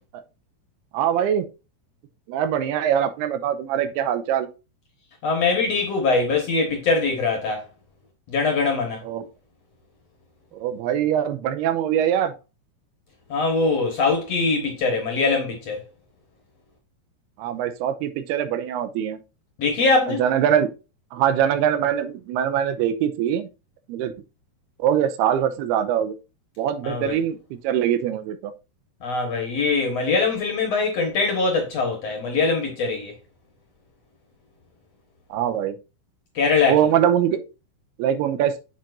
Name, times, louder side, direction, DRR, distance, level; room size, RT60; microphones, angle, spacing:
voice 1, 0.9-1.5 2.3-4.5 9.0-9.2 10.5-12.3 17.4-19.2 20.1-20.7 21.1-23.5 23.9-24.1 24.8-26.2 26.6-28.5 35.3-35.8 36.7-37.4 38.0-38.5, right 9 dB, 85° right, 2.7 m, -23 dB
voice 2, 5.2-7.7 8.3-9.0 13.3-15.8 19.6-20.2 26.8-27.2 29.0-33.1 36.3-36.8, left 4 dB, 55° left, 1.9 m, -22 dB
7.8 x 7.3 x 2.6 m
omnidirectional pair, 4.6 m